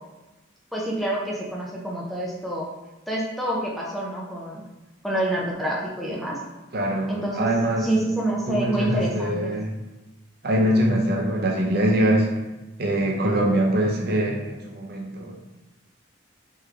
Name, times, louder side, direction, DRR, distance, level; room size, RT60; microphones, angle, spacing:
voice 1, 0.7-2.7 3.1-4.6 5.0-6.4 7.1-7.5 7.8-9.5, right 1 dB, ahead, -4 dB, 0.6 m, -27 dB
voice 2, 6.7-7.9 8.5-9.8 10.4-12.3 12.8-15.3, right 1 dB, 50° right, 0 dB, 0.7 m, -23 dB
3.7 x 3.2 x 3.3 m, 1.1 s
head